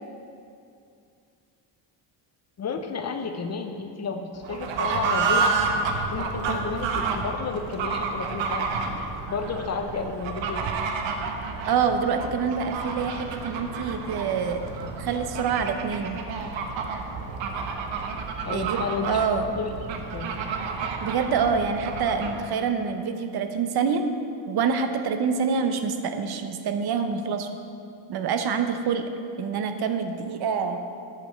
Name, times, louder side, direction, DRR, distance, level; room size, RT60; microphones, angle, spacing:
voice 1, 2.6-5.6 6.1-8.7 9.3-10.7 18.4-19.7 20.1-20.3, left 5 dB, 35° left, 6 dB, 0.5 m, -32 dB
Fowl / Bird, 4.4-22.5, right 4 dB, 80° right, 1.0 m, -30 dB
voice 2, 11.7-14.6 15.0-16.2 18.5-19.5 21.0-24.0 24.5-27.5 28.1-29.1 29.4-30.8, right 6 dB, 55° right, 7 dB, 0.7 m, -26 dB
9.0 x 5.2 x 6.5 m, 2.5 s
cardioid pair, 150°, 44 cm